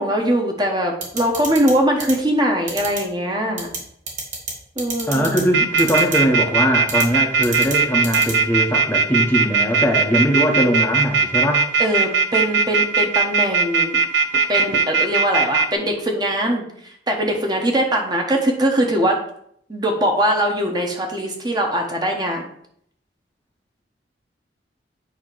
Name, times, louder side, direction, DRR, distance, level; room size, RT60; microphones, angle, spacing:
voice 1, 0.0-3.7 4.8-5.3 11.8-14.0 14.5-19.2 19.7-22.5, equal, 25° right, 1 dB, 1.2 m, -21 dB
sound 1, 1.0-1.7 2.0-2.1 2.7-3.0 3.6-3.8 4.1-4.5 4.8-5.4 5.8-6.2 6.9-7.0 7.4-7.7 8.0-8.3, right 4 dB, 45° right, 2.0 m, -27 dB
voice 2, 5.1-11.6, equal, 10° left, 0 dB, 0.9 m, -20 dB
sound 2, 5.5-15.7, right 5 dB, 75° right, 0.7 m, -18 dB
8.6 x 2.9 x 6.1 m, 0.68 s
head